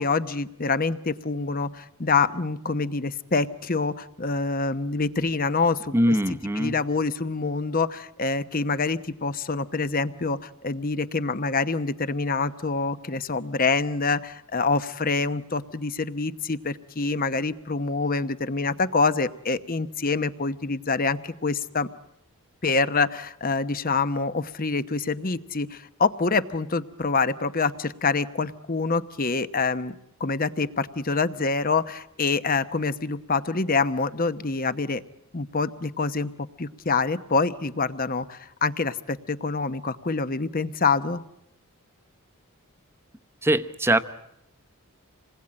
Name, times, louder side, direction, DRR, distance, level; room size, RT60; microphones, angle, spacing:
voice 1, 0.0-6.1 6.6-21.9 22.6-29.9 30.2-35.0 35.3-36.3 36.6-41.2, left 4 dB, 40° left, 13 dB, 0.9 m, -26 dB
voice 2, 5.9-6.8 43.4-44.0, right 1 dB, 10° right, 9 dB, 0.9 m, -22 dB
27.5 x 20.0 x 8.8 m, 0.80 s
head